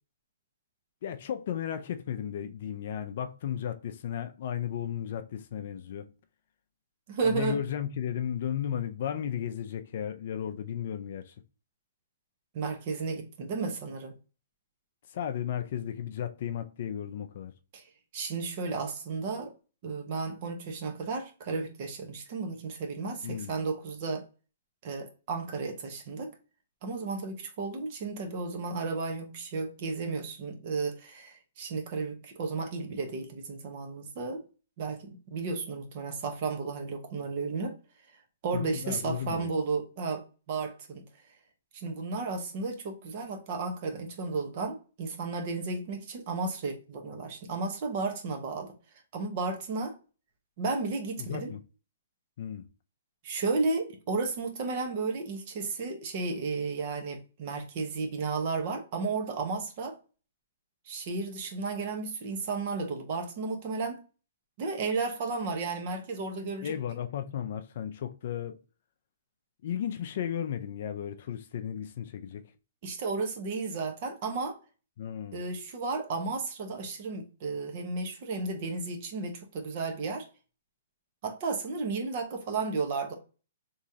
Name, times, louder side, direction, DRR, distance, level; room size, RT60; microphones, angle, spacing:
voice 1, 1.0-6.1 7.2-11.3 15.1-17.5 23.2-23.5 38.5-39.5 51.2-51.6 52.4-52.6 66.6-68.6 69.6-72.5 75.0-75.4, left 9 dB, 55° left, 0.4 m, -34 dB
voice 2, 7.1-7.6 12.5-14.1 17.7-17.8 18.1-19.5 19.8-24.2 24.8-26.3 26.8-34.4 34.8-37.7 38.4-41.0 41.7-48.7 49.1-49.9 50.6-51.5 53.2-60.0 60.9-64.0 64.6-66.7 72.8-74.6 75.3-80.3 81.2-83.1, right 4 dB, 40° right, 0.9 m, -33 dB
3.7 x 3.0 x 2.7 m
hypercardioid pair, 160°, 0 cm